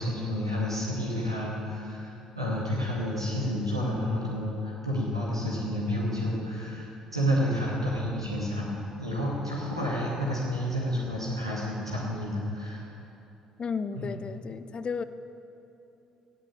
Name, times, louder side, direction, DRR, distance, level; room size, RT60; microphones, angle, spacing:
voice 1, 0.0-12.9 13.9-14.1, equal, 90° right, -5 dB, 2.3 m, -30 dB
voice 2, 13.6-15.0, left 5 dB, 35° left, 12 dB, 0.6 m, -33 dB
17.5 x 6.9 x 7.5 m, 2.9 s
figure-of-eight pair, 50°, 3 cm